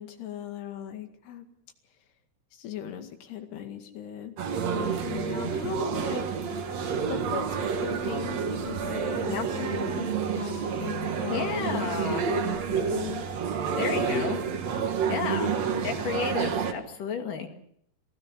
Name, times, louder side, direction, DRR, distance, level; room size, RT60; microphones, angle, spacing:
voice 1, 0.0-1.5 2.5-4.3 4.7-6.2 7.1-13.3 14.0-14.3 15.4-15.9, left 9 dB, 80° left, 6 dB, 4.2 m, -38 dB
sound 1, 4.4-16.7, right 6 dB, 50° right, 2.4 m, -29 dB
voice 2, 11.3-12.3 13.8-14.4 15.1-15.6 15.8-17.5, left 6 dB, 55° left, 4 dB, 3.7 m, -32 dB
27.0 x 17.5 x 6.4 m, 0.68 s
omnidirectional pair, 4.8 m